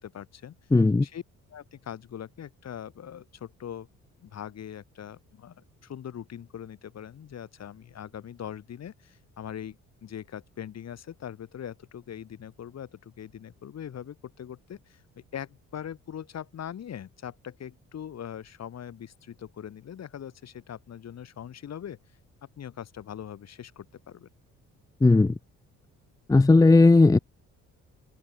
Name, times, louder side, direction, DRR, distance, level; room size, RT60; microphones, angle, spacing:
voice 1, 0.0-0.6 1.0-1.2 1.5-3.9 4.2-22.0 22.6-24.3, left 9 dB, 60° left, 3.7 m, -41 dB
voice 2, 0.7-1.1 25.0-25.3 26.3-27.2, left 3 dB, 10° left, 0.6 m, -17 dB
cardioid pair, 90°, 30 cm